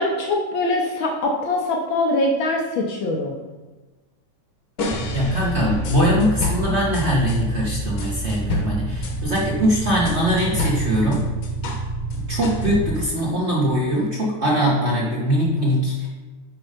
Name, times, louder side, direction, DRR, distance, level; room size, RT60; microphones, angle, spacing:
voice 1, 0.0-3.4, left 2 dB, 80° left, 1 dB, 1.1 m, -23 dB
sound 1, 4.8-7.4 8.0-11.9 12.1-13.1, left 3 dB, 60° left, 1.4 m, -30 dB
sound 2, 4.9-12.9, right 2 dB, 30° right, 0.8 m, -29 dB
voice 2, 5.1-11.3 12.2-16.1, equal, 70° right, -4 dB, 0.6 m, -21 dB
8.7 x 5.4 x 5.1 m, 1.2 s
omnidirectional pair, 3.4 m